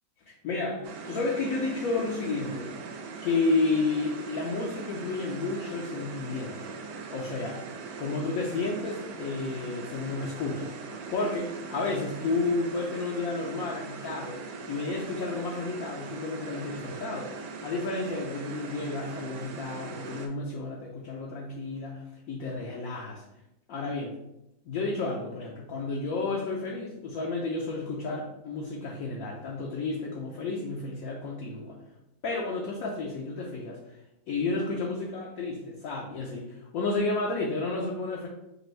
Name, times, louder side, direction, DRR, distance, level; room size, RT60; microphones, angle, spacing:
voice 1, 0.3-2.7 3.2-6.7 7.1-7.6 8.0-14.4 14.7-17.4 17.6-23.2 23.7-24.2 24.6-31.8 32.2-34.0 34.3-38.3, left 3 dB, 65° left, -2 dB, 1.0 m, -31 dB
sound 1, 0.8-20.3, right 4 dB, 85° right, 1.2 m, -41 dB
5.2 x 2.6 x 3.2 m, 0.88 s
omnidirectional pair, 1.7 m